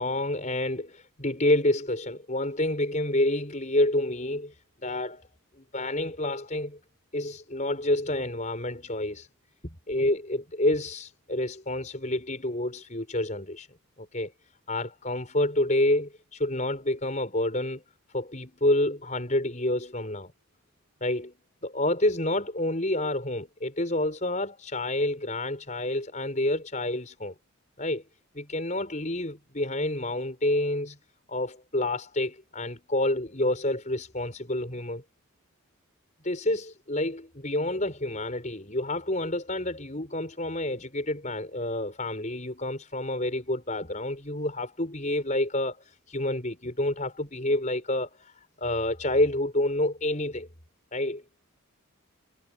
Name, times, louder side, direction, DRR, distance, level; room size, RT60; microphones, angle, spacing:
voice 1, 0.0-5.3 5.6-6.8 7.1-9.3 9.6-13.7 14.0-14.3 14.7-17.8 18.1-20.3 21.0-21.3 21.6-27.3 27.8-28.0 28.3-31.0 31.3-35.0 36.2-50.5 50.9-51.2, left 1 dB, 35° left, 5.4 m, -28 dB
head